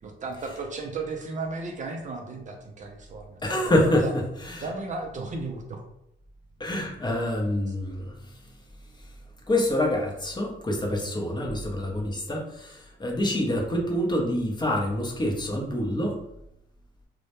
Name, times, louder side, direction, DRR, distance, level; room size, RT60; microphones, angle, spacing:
voice 1, 0.0-4.1 4.6-5.8 7.7-7.8, right 3 dB, 40° right, 2 dB, 0.4 m, -35 dB
voice 2, 3.4-4.6 6.6-8.1 9.5-16.2, left 1 dB, 20° left, 0 dB, 0.6 m, -26 dB
2.1 x 2.0 x 2.9 m, 0.80 s
cardioid pair, 90°, 20 cm